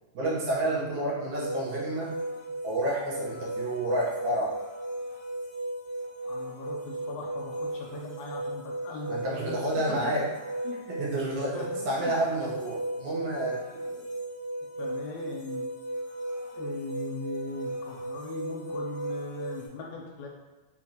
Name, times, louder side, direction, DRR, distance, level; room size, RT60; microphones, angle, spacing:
voice 1, 0.1-2.1 2.6-4.6 9.1-10.2 10.9-11.6 11.9-13.6, right 1 dB, 90° right, -5 dB, 2.4 m, -30 dB
sound 1, 1.3-19.7, right 1 dB, 45° left, 0.9 m, -36 dB
voice 2, 6.3-9.6 10.0-10.1 10.6-10.8 11.5-11.8 13.6-14.1 14.8-15.6 16.5-20.3, left 3 dB, 80° left, -1 dB, 2.1 m, -39 dB
5.8 x 2.5 x 2.8 m, 1.2 s
omnidirectional pair, 3.4 m